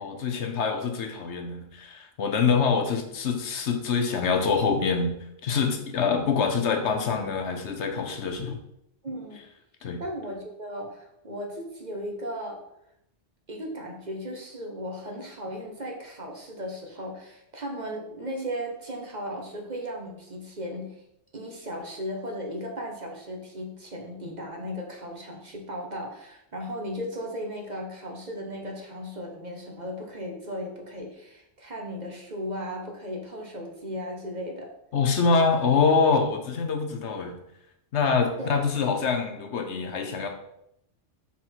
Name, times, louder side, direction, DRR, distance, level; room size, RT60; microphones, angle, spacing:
voice 1, 0.0-5.1 5.4-8.6 9.8-10.0 34.9-37.4 37.9-40.3, left 5 dB, 70° left, 5 dB, 1.1 m, -25 dB
voice 2, 9.0-9.4 10.0-12.6 13.5-21.0 21.3-34.7 38.4-38.6, equal, 40° right, 1 dB, 1.1 m, -36 dB
5.8 x 3.7 x 4.5 m, 0.79 s
omnidirectional pair, 1.2 m